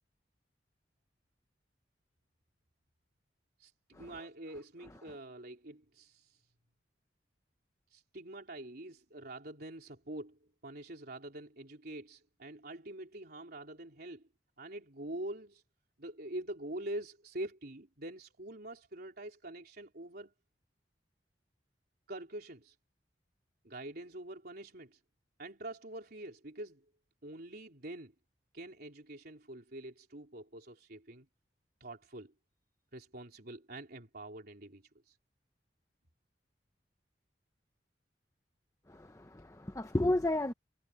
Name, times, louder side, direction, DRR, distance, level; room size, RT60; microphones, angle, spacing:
voice 1, 3.6-6.4 7.9-14.2 14.6-15.6 16.0-20.3 22.1-22.8 23.6-25.0 25.4-26.9 27.2-28.1 28.5-31.3 31.8-32.3 32.9-35.2, right 1 dB, 60° right, 3.6 m, -45 dB
voice 2, 38.9-40.5, left 1 dB, 20° left, 0.8 m, -32 dB
head